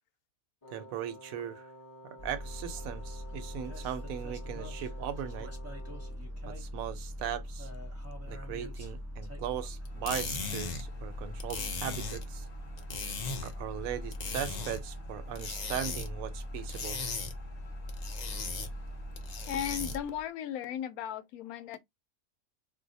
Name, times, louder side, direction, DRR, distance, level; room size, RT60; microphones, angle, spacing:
Wind instrument woodwind instrument, 0.6-6.3, equal, 20° left, 0.8 m, -51 dB
voice 1, 0.7-1.7 2.0-5.5 6.5-7.7 8.3-12.5 13.4-17.0, right 9 dB, 80° right, 1.0 m, -38 dB
sound 1, 2.2-20.0, equal, 15° right, 0.7 m, -41 dB
sound 2, 9.8-20.2, left 4 dB, 50° left, 0.5 m, -39 dB
voice 2, 19.5-21.8, left 10 dB, 85° left, 1.1 m, -36 dB
2.7 x 2.0 x 3.9 m
omnidirectional pair, 1.5 m